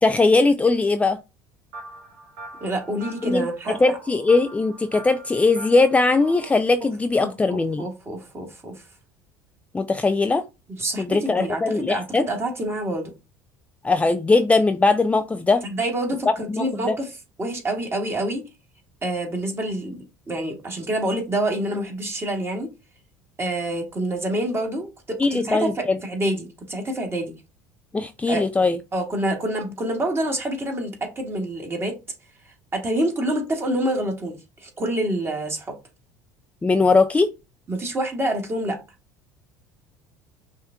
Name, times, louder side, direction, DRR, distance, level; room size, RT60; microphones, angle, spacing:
voice 1, 0.0-1.2 3.2-7.9 9.7-10.4 11.0-12.2 13.8-15.6 16.5-16.9 25.2-26.0 27.9-28.8 36.6-37.3, left 3 dB, 15° left, 0.4 m, -20 dB
sound 1, 1.7-6.5, right 2 dB, 70° right, 2.0 m, -42 dB
voice 2, 2.6-4.0 7.2-8.7 10.7-13.1 15.6-17.1 17.4-18.4 19.0-22.7 23.4-27.3 28.3-28.4 28.9-32.0 32.7-34.4 34.6-35.8 37.7-38.8, right 1 dB, 25° right, 2.0 m, -27 dB
5.5 x 2.6 x 3.5 m
hypercardioid pair, 70°, 9 cm